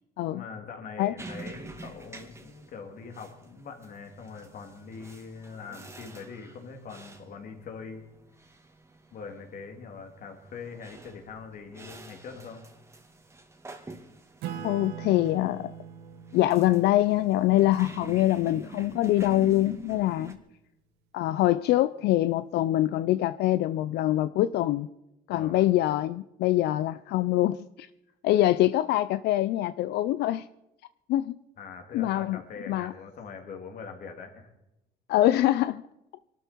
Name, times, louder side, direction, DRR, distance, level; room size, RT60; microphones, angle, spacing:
voice 1, 0.3-8.0 9.1-12.6 25.3-25.6 31.6-34.5, left 5 dB, 55° left, 4 dB, 3.1 m, -43 dB
rolling office chair sitting standing up rolling again, 1.2-20.3, right 2 dB, 15° right, 2.2 m, -47 dB
Acoustic guitar / Strum, 14.4-19.4, right 8 dB, 85° right, 1.8 m, -43 dB
voice 2, 14.6-15.7 16.3-20.4 21.1-24.9 25.3-27.9 28.2-30.5 31.1-31.4 31.9-32.4 32.7-32.9 35.1-35.8, left 14 dB, 80° left, 14 dB, 0.5 m, -24 dB
23.5 x 12.5 x 4.6 m, 0.89 s
cardioid pair, 110°, 17 cm